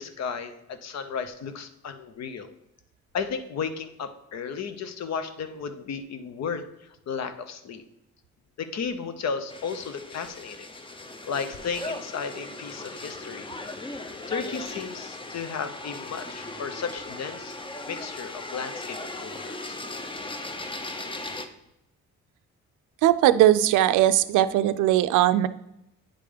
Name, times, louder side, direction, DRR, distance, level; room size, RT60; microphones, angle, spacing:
voice 1, 0.0-2.5 3.1-7.8 8.6-10.7 11.3-13.5 14.3-17.6 17.9-19.8, left 6 dB, 60° left, 10 dB, 0.8 m, -34 dB
sound 1, 9.5-21.5, left 2 dB, 15° left, 0.6 m, -38 dB
voice 2, 23.0-25.5, right 13 dB, 85° right, 13 dB, 0.5 m, -19 dB
9.0 x 3.4 x 5.0 m, 0.83 s
cardioid pair, 90°, 30 cm